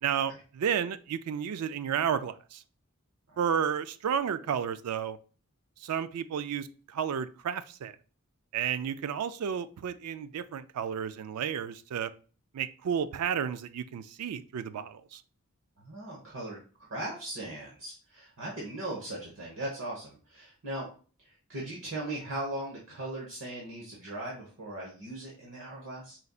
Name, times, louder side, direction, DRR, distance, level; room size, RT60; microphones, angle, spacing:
voice 1, 0.0-2.6 3.4-5.2 5.8-7.9 8.5-12.1 12.5-15.2, right 8 dB, 90° right, 13 dB, 0.4 m, -32 dB
voice 2, 15.8-20.9 21.2-26.2, right 1 dB, 60° right, -2 dB, 1.1 m, -39 dB
4.3 x 3.9 x 2.3 m, 0.38 s
head